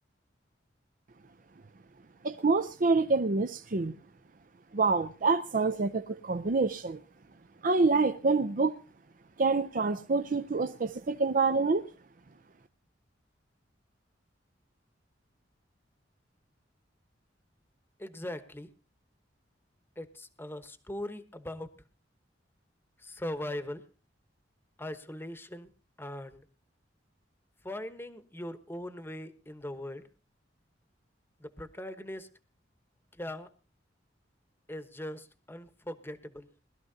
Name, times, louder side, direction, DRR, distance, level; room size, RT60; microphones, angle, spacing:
voice 1, 2.2-3.9 4.7-7.0 7.6-8.7 9.4-11.9, right 3 dB, 45° right, 0.6 m, -27 dB
voice 2, 18.0-18.7 20.0-21.7 23.0-23.8 24.8-25.7 26.0-26.4 27.6-30.1 31.4-32.3 33.2-33.5 34.7-36.5, left 1 dB, 10° left, 1.0 m, -40 dB
21.0 x 13.0 x 2.7 m
head